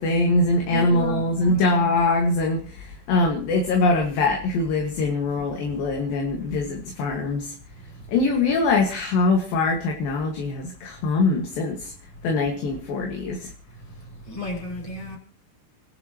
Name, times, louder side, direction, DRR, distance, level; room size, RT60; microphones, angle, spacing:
voice 1, 0.0-7.5 8.1-11.9 12.2-13.5, left 3 dB, 65° left, 3.4 m, -23 dB
voice 2, 0.7-1.6 14.3-15.2, left 1 dB, 35° left, 7.2 m, -33 dB
29.0 x 11.5 x 3.0 m
omnidirectional pair, 4.6 m